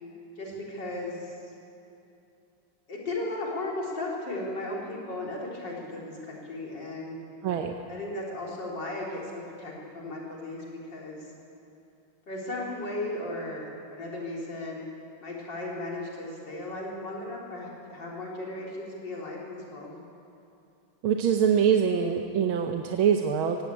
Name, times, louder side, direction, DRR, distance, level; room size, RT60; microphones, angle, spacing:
voice 1, 0.4-1.3 2.9-7.2 7.9-10.6 10.9-11.2 12.3-14.9 15.2-20.0, left 2 dB, 60° left, -3 dB, 4.4 m, -36 dB
voice 2, 7.4-7.8 21.0-23.6, right 7 dB, 90° right, 4 dB, 1.7 m, -24 dB
17.5 x 17.0 x 8.5 m, 2.8 s
omnidirectional pair, 2.2 m